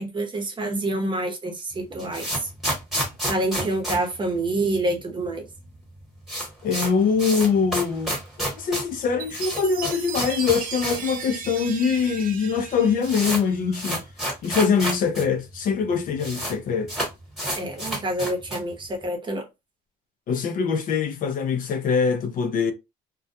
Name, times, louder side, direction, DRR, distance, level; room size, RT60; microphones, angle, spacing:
voice 1, 0.0-2.5 3.3-5.4 17.6-19.4, right 2 dB, 30° right, 0.8 m, -27 dB
sound 1, 1.7-5.0 5.2-5.3 5.6-5.7 6.0-11.1 11.4-11.5 12.2-12.3 12.6-15.2 15.5-15.6 15.8-16.5 16.9-18.7, equal, ahead, 1.2 m, -30 dB
voice 2, 6.6-8.1 8.5-14.0 14.4-16.9 20.3-22.7, left 6 dB, 55° left, 0.5 m, -23 dB
Chime, 9.2-13.8, right 7 dB, 55° right, 0.5 m, -36 dB
2.2 x 2.2 x 2.6 m
cardioid pair, 110°, 17 cm